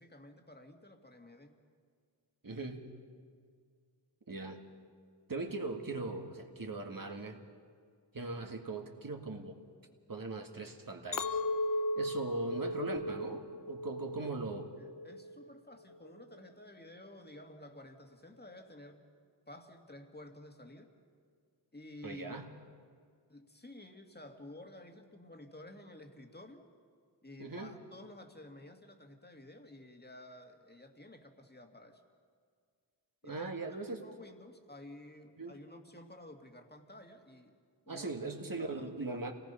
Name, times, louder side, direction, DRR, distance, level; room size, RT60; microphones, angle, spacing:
voice 1, 0.0-1.5 14.2-14.4 14.8-19.0 19.5-20.9 21.7-22.5 23.3-26.6 27.2-32.0 33.2-37.5 37.9-38.1 38.5-39.2, left 1 dB, 25° left, 4 dB, 2.1 m, -52 dB
voice 2, 2.4-2.9 4.3-4.6 5.3-7.4 8.1-9.6 10.1-11.4 12.0-14.7 22.0-22.5 27.4-27.7 33.3-34.0 35.4-35.6 37.9-39.3, right 3 dB, 50° right, 3 dB, 1.9 m, -39 dB
Chink clink, 11.1-15.5 15.9-16.4, left 1 dB, 50° left, 0.7 m, -37 dB
27.5 x 18.5 x 5.7 m, 2.1 s
wide cardioid pair, 60°, 43 cm